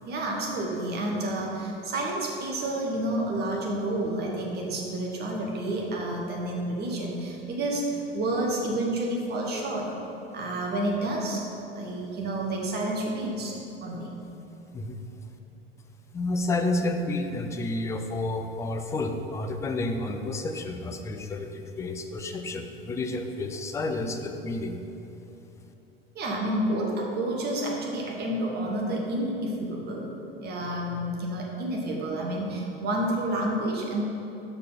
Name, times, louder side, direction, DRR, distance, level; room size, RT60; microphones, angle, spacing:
voice 1, 0.1-9.9 10.3-11.5 11.7-14.1 26.1-30.1 30.4-34.0, right 1 dB, 30° right, -1 dB, 1.3 m, -29 dB
voice 2, 16.1-24.8, left 2 dB, 10° left, 6 dB, 0.3 m, -30 dB
5.9 x 5.0 x 5.6 m, 3.0 s
figure-of-eight pair, 80°, 31 cm